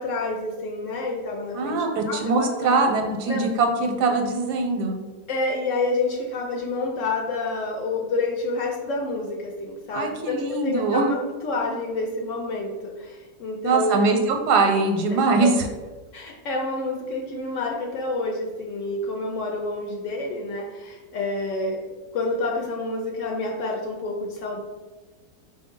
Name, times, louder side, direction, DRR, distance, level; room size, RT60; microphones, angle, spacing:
voice 1, 0.0-2.8 3.3-3.4 5.3-11.2 11.4-14.0 15.1-15.5 16.1-21.8 22.1-24.6, left 2 dB, 70° left, 0 dB, 0.8 m, -28 dB
voice 2, 1.5-5.0 9.9-11.1 13.6-15.5, right 3 dB, 90° right, 3 dB, 1.2 m, -22 dB
4.4 x 2.7 x 3.6 m, 1.3 s
omnidirectional pair, 1.7 m